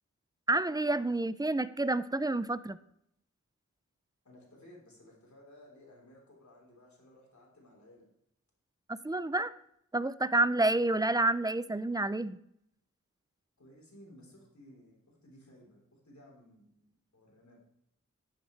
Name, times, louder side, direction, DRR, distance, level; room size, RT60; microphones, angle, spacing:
voice 1, 0.5-2.8 8.9-9.5 9.9-12.4, right 2 dB, 15° right, 15 dB, 0.4 m, -29 dB
voice 2, 4.2-8.1 13.6-17.6, left 1 dB, 65° left, -2 dB, 3.7 m, -57 dB
10.5 x 9.5 x 3.2 m, 0.75 s
wide cardioid pair, 50°, 30 cm